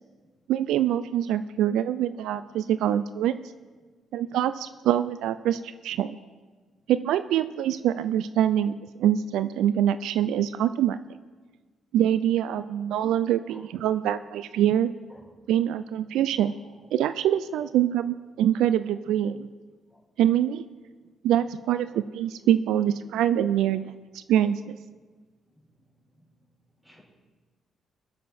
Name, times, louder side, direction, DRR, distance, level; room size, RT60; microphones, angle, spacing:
voice 1, 0.5-3.3 4.1-6.2 6.9-8.7 9.0-11.0 11.9-14.9 15.5-16.6 16.9-19.5 20.2-20.7 21.2-23.8 24.1-24.8, right 11 dB, 85° right, 13 dB, 0.3 m, -24 dB
voice 2, 16.4-16.8 17.6-17.7 19.9-20.0 21.9-22.0 24.3-24.4 26.2-26.3 26.8-27.0, equal, 5° right, -4 dB, 4.9 m, -53 dB
21.5 x 7.3 x 4.3 m, 1.4 s
cardioid pair, 90°, 0 cm